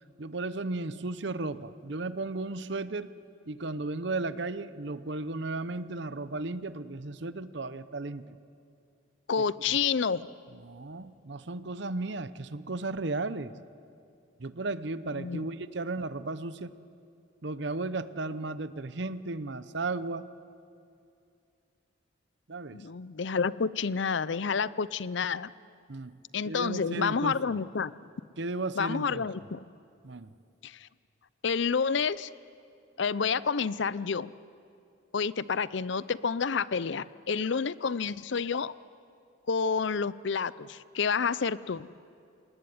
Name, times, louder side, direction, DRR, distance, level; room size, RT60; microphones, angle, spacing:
voice 1, 0.2-3.1 3.5-8.4 10.5-13.5 14.4-16.7 17.4-20.3 22.5-22.8 25.9-26.2 26.4-27.4 28.4-29.3 30.0-30.3, right 3 dB, 60° right, 14 dB, 0.8 m, -35 dB
voice 2, 9.3-10.3 15.1-15.4 22.7-25.5 26.3-27.9 28.8-29.6 30.6-30.9 31.4-32.3 33.0-34.3 35.1-38.7 39.5-41.9, left 5 dB, 65° left, 18 dB, 0.5 m, -29 dB
27.5 x 19.0 x 9.6 m, 2.5 s
head